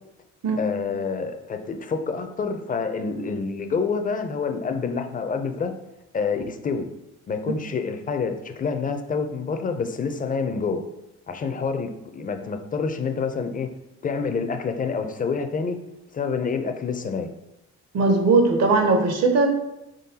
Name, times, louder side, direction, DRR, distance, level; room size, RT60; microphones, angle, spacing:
voice 1, 0.6-5.7 6.1-6.9 7.3-10.8 11.3-13.7 14.0-15.8 16.1-17.3, left 5 dB, 30° left, 7 dB, 0.4 m, -27 dB
voice 2, 17.9-19.5, right 3 dB, 60° right, 5 dB, 0.7 m, -19 dB
3.8 x 3.7 x 2.8 m, 0.91 s
cardioid pair, 90°, 30 cm